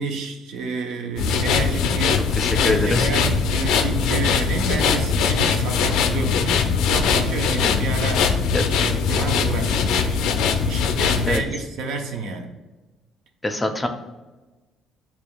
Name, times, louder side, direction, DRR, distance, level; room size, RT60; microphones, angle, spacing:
voice 1, 0.0-2.3 2.6-8.3 8.8-10.3 10.6-12.5, right 3 dB, 80° right, 4 dB, 0.6 m, -29 dB
sound 1, 1.2-11.4, left 6 dB, 80° left, 0.4 m, -21 dB
voice 2, 2.1-3.1 8.2-8.7 11.3-11.4 13.4-13.9, left 2 dB, 15° left, 6 dB, 0.5 m, -25 dB
6.9 x 2.4 x 2.3 m, 1.2 s
supercardioid pair, 75°, 0 cm